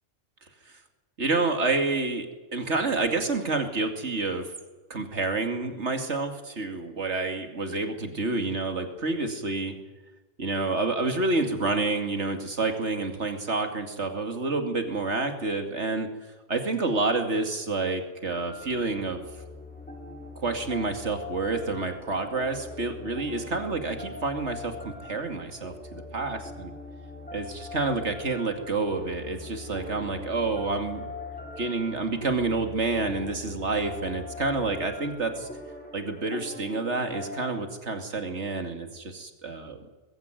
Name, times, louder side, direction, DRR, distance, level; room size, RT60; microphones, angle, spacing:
voice 1, 1.2-2.3 2.5-4.5 4.9-9.7 10.4-16.1 16.5-19.2 20.4-26.7 27.3-31.1 31.6-35.5 35.9-39.8, right 3 dB, 85° right, 6 dB, 2.8 m, -28 dB
sound 1, 18.3-37.5, left 3 dB, 5° left, 5.5 m, -41 dB
21.0 x 16.0 x 9.3 m, 1.2 s
omnidirectional pair, 1.2 m